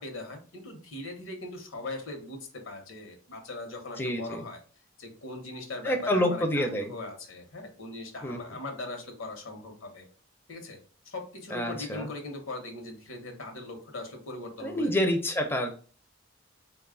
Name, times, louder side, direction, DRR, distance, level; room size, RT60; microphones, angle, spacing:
voice 1, 0.0-4.6 5.0-10.1 10.5-10.8 11.0-14.9, left 2 dB, 85° left, 5 dB, 0.9 m, -40 dB
voice 2, 4.0-4.4 5.8-6.9 8.2-8.4 11.5-12.1 14.6-15.8, equal, 10° left, 4 dB, 0.4 m, -28 dB
3.6 x 2.3 x 3.6 m, 0.40 s
head